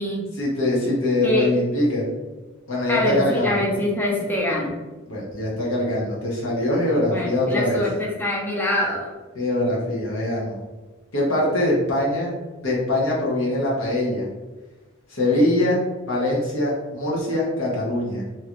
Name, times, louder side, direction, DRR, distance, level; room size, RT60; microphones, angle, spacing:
voice 1, 0.3-2.0 2.7-3.6 5.1-7.8 9.3-10.6 11.1-12.3 12.6-14.3 15.1-15.8 16.1-18.2, left 1 dB, 80° left, -5 dB, 1.1 m, -23 dB
voice 2, 2.9-4.8 7.1-9.1, left 1 dB, 10° left, -4 dB, 0.5 m, -24 dB
3.0 x 2.5 x 2.9 m, 1.2 s
head